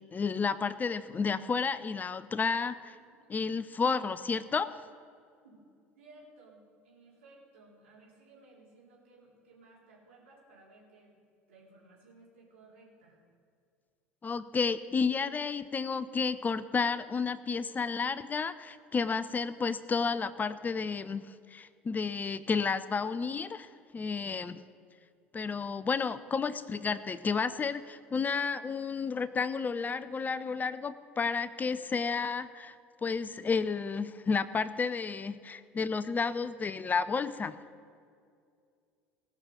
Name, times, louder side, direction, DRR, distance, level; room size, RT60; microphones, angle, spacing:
voice 1, 0.1-3.0 3.3-4.7 14.2-24.6 25.3-32.7 33.0-37.6, left 5 dB, 25° left, 14 dB, 0.5 m, -31 dB
voice 2, 6.0-11.2 11.5-13.2, right 2 dB, 80° right, -5 dB, 4.1 m, -58 dB
19.0 x 6.3 x 6.8 m, 2.3 s
hypercardioid pair, 70°, 7 cm